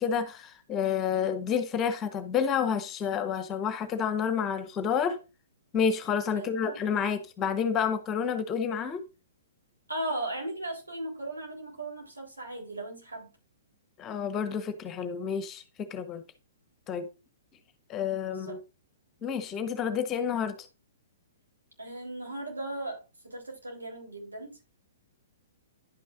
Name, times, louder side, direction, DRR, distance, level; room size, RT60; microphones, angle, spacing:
voice 1, 0.0-5.2 5.7-9.0 14.0-16.2 16.9-17.1 17.9-18.6 19.2-20.6, left 7 dB, 25° left, 1.1 m, -29 dB
voice 2, 6.3-6.8 9.9-13.3 18.2-18.6 21.8-24.6, right 1 dB, 85° right, 3.8 m, -37 dB
11.0 x 6.1 x 2.6 m
figure-of-eight pair, 120°, 0 cm